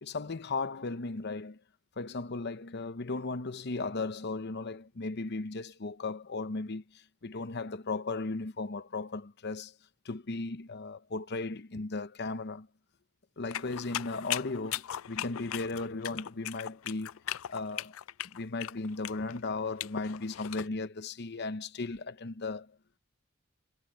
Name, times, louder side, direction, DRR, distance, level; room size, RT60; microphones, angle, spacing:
voice 1, 0.0-1.6 2.0-9.7 10.0-12.7 13.4-17.2 17.5-17.9 18.3-22.7, left 3 dB, 55° left, 0.8 m, -36 dB
sound 1, 13.5-20.7, left 12 dB, 80° left, 0.4 m, -38 dB
head